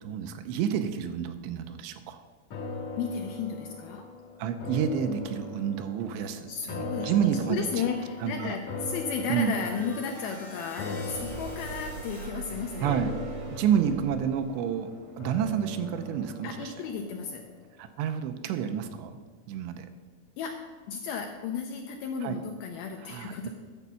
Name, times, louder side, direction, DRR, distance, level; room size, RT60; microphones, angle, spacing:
voice 1, 0.0-2.2 4.4-7.8 8.2-8.6 9.3-9.6 12.8-13.1 13.5-14.9 15.2-16.7 17.8-19.2 19.5-19.9 22.2-22.4 23.0-23.5, right 8 dB, 85° right, 9 dB, 2.8 m, -29 dB
sound 1, 2.5-17.8 18.2-18.3, left 3 dB, 65° left, 1.7 m, -40 dB
voice 2, 3.0-4.0 6.5-13.0 16.4-17.4 20.4-23.5, left 6 dB, 85° left, 3 dB, 2.2 m, -34 dB
sound 2, 7.5-12.3, left 1 dB, 45° left, 0.8 m, -49 dB
sound 3, 10.9-16.8, right 4 dB, 65° right, 2.0 m, -43 dB
11.0 x 7.2 x 5.7 m, 1.5 s
omnidirectional pair, 5.0 m